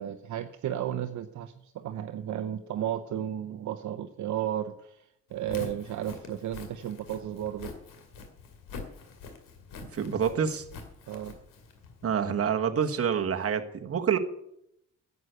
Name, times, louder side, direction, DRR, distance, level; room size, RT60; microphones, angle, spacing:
voice 1, 0.0-7.7 11.1-11.4, right 11 dB, 65° right, 8 dB, 0.8 m, -34 dB
Walk footsteps, 5.3-12.1, left 4 dB, 90° left, 2.5 m, -45 dB
voice 2, 9.9-10.6 12.0-14.2, right 7 dB, 45° right, 6 dB, 1.3 m, -27 dB
11.0 x 8.3 x 8.0 m, 0.77 s
cardioid pair, 85°, 32 cm